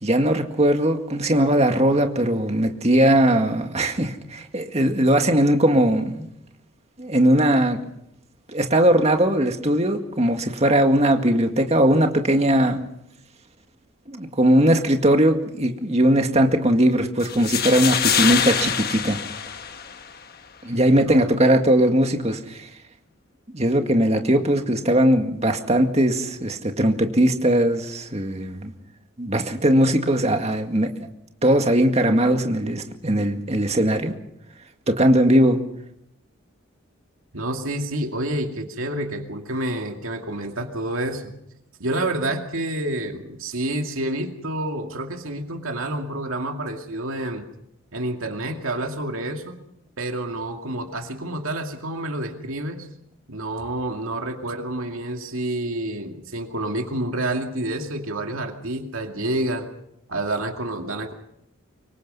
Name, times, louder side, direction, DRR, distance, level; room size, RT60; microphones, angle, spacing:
voice 1, 0.0-6.3 7.0-7.8 8.5-12.8 14.1-19.2 20.6-22.7 23.5-28.7 29.2-30.9 31.4-34.1 34.9-35.6, right 1 dB, 30° right, 4 dB, 2.0 m, -19 dB
sound 1, 17.2-20.2, left 8 dB, 50° left, 1.2 m, -24 dB
voice 2, 37.3-41.3 41.8-47.4 47.9-49.6 50.0-52.9 53.3-59.7 60.1-61.1, right 1 dB, 80° right, 3 dB, 2.3 m, -28 dB
25.5 x 23.0 x 5.5 m, 0.80 s
head